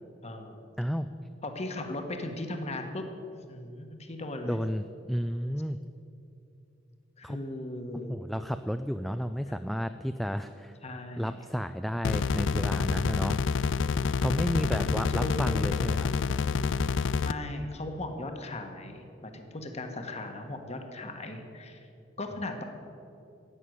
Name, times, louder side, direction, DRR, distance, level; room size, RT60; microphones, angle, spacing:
voice 1, 0.2-0.6 1.4-3.0 3.3-4.6 7.2-8.1 10.8-11.3 14.6-15.5 17.2-21.9 22.2-22.6, left 1 dB, 35° left, 5 dB, 1.3 m, -37 dB
voice 2, 0.8-1.1 4.4-5.8 7.2-7.4 8.1-10.8 11.2-13.4 14.2-16.1, equal, ahead, 8 dB, 0.3 m, -32 dB
sound 1, 12.0-17.3, left 5 dB, 80° left, 0.4 m, -28 dB
11.0 x 8.4 x 9.3 m, 2.7 s
head